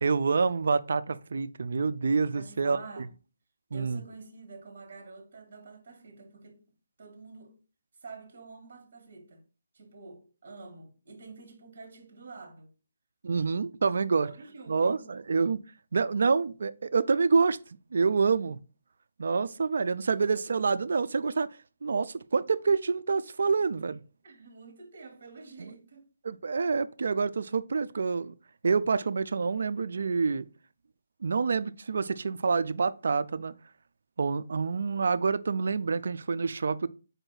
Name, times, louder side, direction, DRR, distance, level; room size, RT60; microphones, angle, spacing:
voice 1, 0.0-2.8 3.7-4.0 13.2-14.3 14.7-15.6 15.9-17.6 17.9-18.6 19.2-21.5 21.8-24.0 25.6-25.7 26.2-28.3 28.6-30.5 31.2-33.5 34.2-36.9, right 4 dB, 65° right, 0.3 m, -27 dB
voice 2, 2.3-3.1 3.7-6.6 7.0-7.5 8.0-9.4 9.7-12.7 13.3-13.5 14.2-15.0 20.0-20.4 24.2-26.1, right 3 dB, 50° right, 1.3 m, -48 dB
4.8 x 2.6 x 3.8 m
hypercardioid pair, 165°, 0 cm